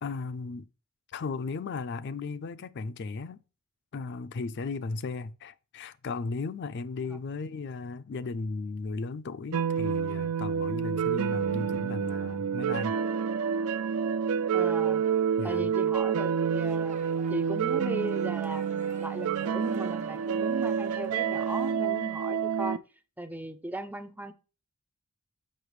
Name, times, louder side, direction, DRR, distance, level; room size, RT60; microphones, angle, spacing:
voice 1, 0.0-0.7 1.1-3.4 3.9-12.9 15.4-15.7, left 4 dB, 50° left, 0.4 m, -36 dB
sound 1, 9.5-22.8, right 7 dB, 85° right, 0.4 m, -28 dB
voice 2, 14.5-15.0 15.4-17.0 17.3-22.8 23.2-24.3, right 1 dB, 5° right, 0.4 m, -37 dB
sound 2, 16.5-21.7, right 4 dB, 35° right, 0.8 m, -49 dB
6.7 x 5.8 x 3.1 m
head